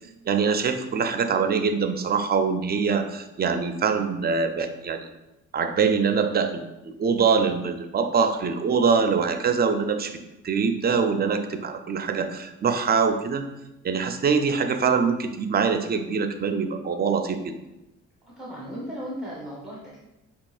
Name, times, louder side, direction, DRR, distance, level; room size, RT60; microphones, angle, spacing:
voice 1, 0.3-5.1 5.5-6.7 7.0-10.2 10.4-13.4 13.8-17.5, right 5 dB, 35° right, 7 dB, 0.4 m, -24 dB
voice 2, 18.2-20.0, equal, ahead, -6 dB, 0.9 m, -36 dB
5.2 x 2.8 x 2.4 m, 0.95 s
cardioid pair, 90°, 30 cm